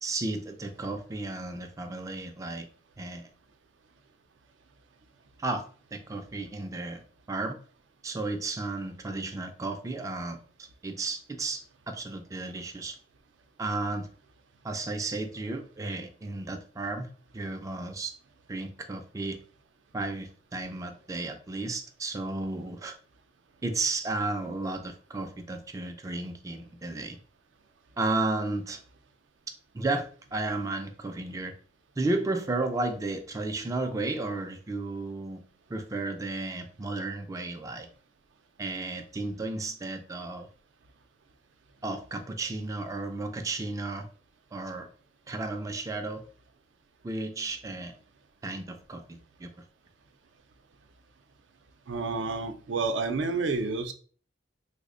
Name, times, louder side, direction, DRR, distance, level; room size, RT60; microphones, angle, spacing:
voice 1, 0.0-2.7 3.0-3.3 5.4-5.6 5.9-7.0 7.3-7.6 8.0-13.0 13.6-14.1 14.6-17.1 17.3-18.1 18.5-19.4 19.9-23.0 23.6-27.2 28.0-28.8 29.7-31.5 32.0-35.4 35.7-37.9 38.6-40.5 41.8-44.1 44.5-44.9 45.3-46.2 47.0-47.9 48.4-49.5, right 2 dB, 20° right, 5 dB, 0.3 m, -33 dB
voice 2, 51.9-53.9, right 3 dB, 85° right, 7 dB, 0.5 m, -29 dB
3.4 x 2.0 x 3.6 m, 0.43 s
head